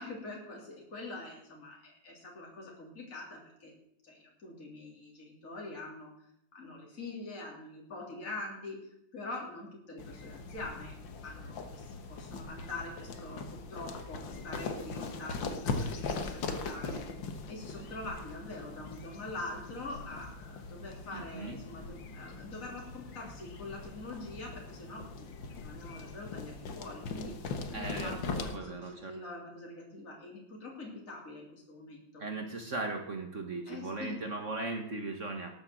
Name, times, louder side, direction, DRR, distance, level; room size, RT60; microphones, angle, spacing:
voice 1, 0.0-3.7 4.0-6.1 6.5-8.8 9.1-11.0 11.2-17.0 17.5-27.4 27.7-32.2 33.7-34.5, left 2 dB, 45° left, -2 dB, 3.6 m, -44 dB
sound 1, 10.0-28.6, left 4 dB, 85° left, 2.1 m, -40 dB
voice 2, 21.1-21.6 27.7-29.2 32.2-35.5, right 3 dB, 45° right, 4 dB, 1.9 m, -38 dB
18.5 x 8.0 x 7.7 m, 0.78 s
omnidirectional pair, 2.0 m